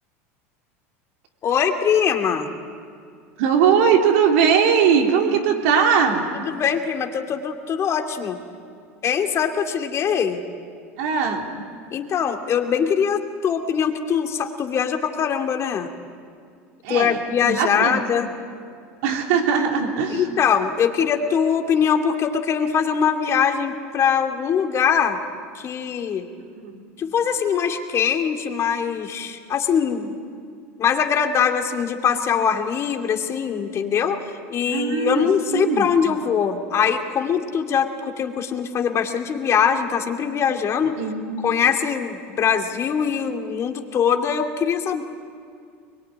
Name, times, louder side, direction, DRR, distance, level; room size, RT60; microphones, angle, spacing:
voice 1, 1.4-2.5 6.3-8.4 9.0-10.4 11.9-15.9 16.9-18.3 20.1-25.2 25.5-26.3 27.0-30.1 30.8-34.2 34.5-41.0 41.4-45.0, left 7 dB, 40° left, 4 dB, 2.5 m, -22 dB
voice 2, 3.4-6.3 11.0-11.5 16.8-18.0 19.0-20.2 26.6-26.8 34.7-35.9 41.0-41.4, right 6 dB, 75° right, 2 dB, 3.6 m, -20 dB
23.5 x 22.0 x 9.6 m, 2.2 s
supercardioid pair, 100°, 7 cm